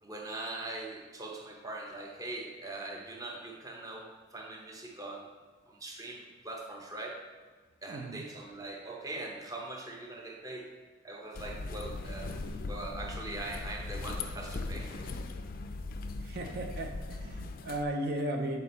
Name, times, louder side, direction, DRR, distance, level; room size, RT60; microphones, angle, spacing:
voice 1, 0.0-5.3 5.7-7.2 7.8-10.7 11.0-12.3 12.7-15.1, right 2 dB, 20° right, 1 dB, 0.7 m, -42 dB
voice 2, 7.9-8.2 16.2-18.6, right 1 dB, 55° right, 3 dB, 0.5 m, -35 dB
sound 1, 11.3-17.8, left 3 dB, 45° left, 0.4 m, -39 dB
6.8 x 4.2 x 4.1 m, 1.4 s
head